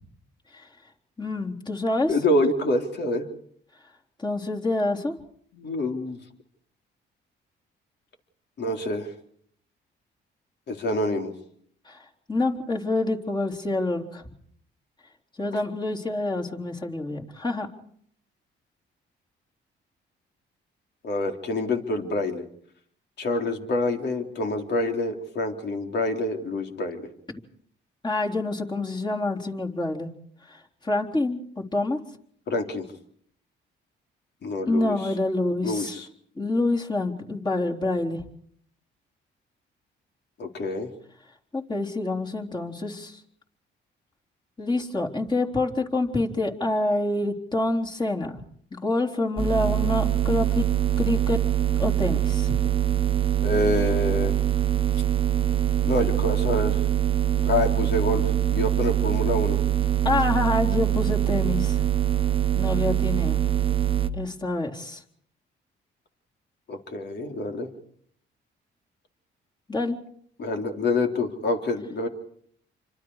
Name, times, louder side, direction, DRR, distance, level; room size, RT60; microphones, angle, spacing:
voice 1, 1.2-2.1 4.2-5.1 11.9-12.0 12.3-14.3 15.4-17.7 28.0-30.1 30.5-30.6 30.8-32.0 34.7-35.9 36.4-38.2 41.5-43.2 44.6-48.4 48.7-50.7 51.0-51.4 51.8-52.6 60.0-61.8 62.6-63.4 64.1-65.0 69.7-70.0, left 2 dB, 20° left, -1 dB, 3.9 m, -27 dB
voice 2, 2.1-3.3 5.5-6.2 8.6-9.1 10.7-11.3 21.0-22.5 23.2-27.1 32.5-32.9 34.4-35.1 35.6-36.1 40.4-40.9 53.4-54.4 55.8-56.8 57.4-59.6 66.7-67.7 70.4-72.1, left 2 dB, 60° left, 3 dB, 3.9 m, -27 dB
sound 1, 49.4-64.1, right 12 dB, 25° right, 1.3 m, -23 dB
28.0 x 25.5 x 4.9 m, 0.64 s
cardioid pair, 90°, 20 cm